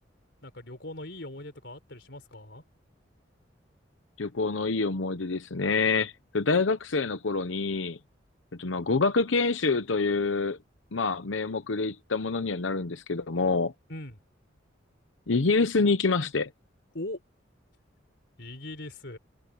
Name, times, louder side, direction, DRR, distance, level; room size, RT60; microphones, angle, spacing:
voice 1, 0.4-2.6 13.9-14.2 16.9-17.2 18.4-19.2, left 1 dB, 65° left, 4.6 m, -40 dB
voice 2, 4.2-8.0 8.6-10.6 10.9-13.7 15.3-16.5, left 4 dB, 90° left, 0.9 m, -26 dB
head